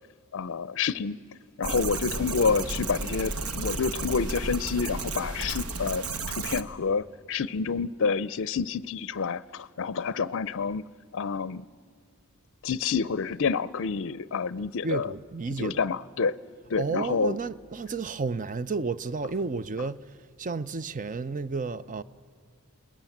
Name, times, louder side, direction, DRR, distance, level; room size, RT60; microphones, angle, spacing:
voice 1, 0.3-1.2 1.6-6.0 6.4-10.8 11.1-11.6 12.6-15.1 15.6-16.4 16.7-17.4, left 5 dB, 60° left, 0.5 m, -28 dB
sound 1, 1.6-6.6, right 3 dB, 75° right, 1.2 m, -33 dB
voice 2, 14.8-15.9 16.8-22.0, right 4 dB, 35° right, 0.5 m, -32 dB
28.5 x 20.5 x 7.3 m
head